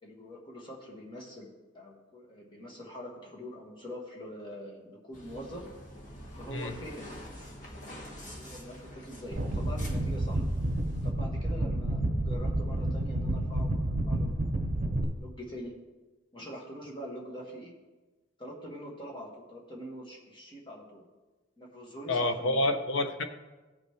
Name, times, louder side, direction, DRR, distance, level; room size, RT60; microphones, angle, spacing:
voice 1, 0.0-5.7 6.3-7.2 7.7-10.4 11.0-14.4 14.7-15.7 16.3-17.7 18.4-21.0 21.6-22.7, equal, 25° left, -2 dB, 1.7 m, -44 dB
sound 1, 5.1-11.1, equal, 40° left, 1.5 m, -46 dB
sound 2, 9.3-15.0, right 1 dB, 45° right, 0.9 m, -30 dB
voice 2, 22.1-23.2, left 2 dB, 80° left, 8 dB, 0.7 m, -28 dB
16.0 x 5.4 x 3.2 m, 1.2 s
head